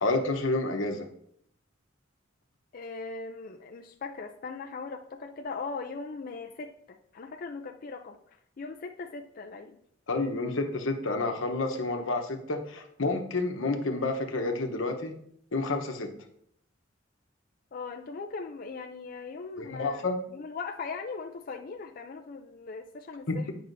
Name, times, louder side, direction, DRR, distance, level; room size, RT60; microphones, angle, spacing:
voice 1, 0.0-1.1 10.1-15.1 15.5-16.1 19.6-20.2 23.3-23.5, left 2 dB, 85° left, 4 dB, 1.0 m, -29 dB
voice 2, 2.7-9.8 17.7-23.5, left 4 dB, 45° left, 3 dB, 0.4 m, -39 dB
9.2 x 5.4 x 2.6 m, 0.68 s
head